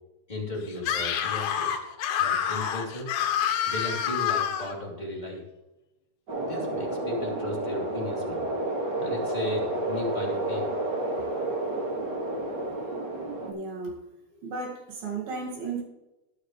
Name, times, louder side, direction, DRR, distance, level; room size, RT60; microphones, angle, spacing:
voice 1, 0.3-1.8 2.2-3.1 3.7-5.4 6.3-8.5 9.0-10.7, left 2 dB, 15° left, -3 dB, 2.5 m, -35 dB
Screaming, 0.8-4.7, left 9 dB, 80° left, 2.8 m, -27 dB
sound 1, 6.3-13.5, right 2 dB, 35° right, 2.0 m, -30 dB
voice 2, 13.5-14.0 14.4-15.8, right 4 dB, 75° right, -1 dB, 3.9 m, -34 dB
12.0 x 11.5 x 3.2 m, 0.96 s
omnidirectional pair, 4.3 m